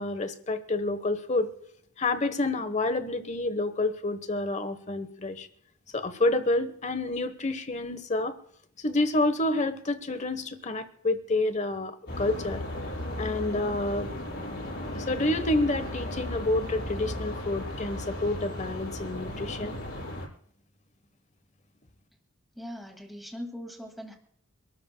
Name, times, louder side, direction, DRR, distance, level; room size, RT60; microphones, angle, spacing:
voice 1, 0.0-1.5 2.0-5.5 5.9-8.4 8.8-12.6 13.2-14.1 14.9-19.8, left 2 dB, 35° left, 10 dB, 1.1 m, -28 dB
sound 1, 12.1-20.3, left 1 dB, 55° left, 5.9 m, -35 dB
voice 2, 22.5-24.1, equal, ahead, 2 dB, 2.2 m, -40 dB
28.0 x 13.0 x 2.3 m, 0.65 s
head